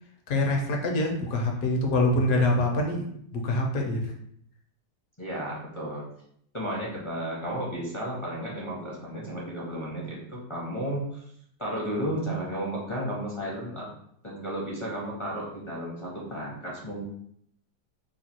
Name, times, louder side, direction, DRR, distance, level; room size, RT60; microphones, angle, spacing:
voice 1, 0.3-3.0 3.3-4.1, left 2 dB, 65° left, 1 dB, 1.2 m, -25 dB
voice 2, 5.2-6.0 6.5-11.2 11.6-13.9 14.2-17.0, right 1 dB, 30° left, -6 dB, 0.5 m, -33 dB
3.1 x 2.4 x 4.3 m, 0.68 s
omnidirectional pair, 1.7 m